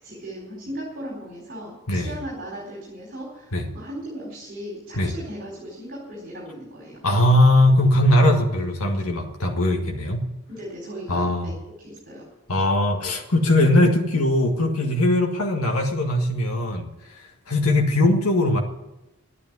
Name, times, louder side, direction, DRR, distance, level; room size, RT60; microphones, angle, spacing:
voice 1, 0.0-7.0 10.5-11.5 11.8-12.2, right 1 dB, 45° right, -4 dB, 4.4 m, -37 dB
voice 2, 1.9-2.2 3.5-3.7 5.0-5.2 7.0-10.3 11.1-11.5 12.5-16.9 17.5-18.6, left 1 dB, 85° left, 1 dB, 1.8 m, -20 dB
12.0 x 9.9 x 9.6 m, 0.94 s
head